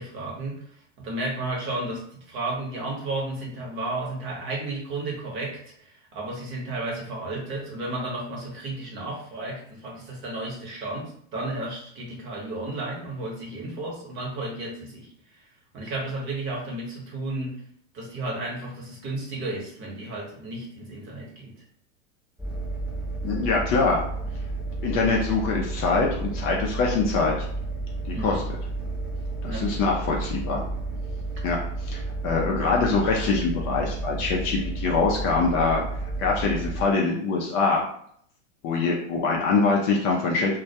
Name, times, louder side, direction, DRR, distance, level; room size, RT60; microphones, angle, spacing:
voice 1, 0.0-15.5 15.7-17.6 17.9-21.6 28.1-28.4 29.4-29.7 31.4-31.5, right 2 dB, 30° right, -2 dB, 0.9 m, -33 dB
sound 1, 22.4-36.9, right 3 dB, 5° right, 0.8 m, -32 dB
voice 2, 23.2-24.0 24.8-27.5 28.1-28.4 29.4-30.6 31.4-31.6 31.9-35.8 36.2-37.8 38.6-40.6, left 4 dB, 35° left, -1 dB, 0.5 m, -24 dB
2.2 x 2.1 x 2.7 m, 0.66 s
hypercardioid pair, 120°, 38 cm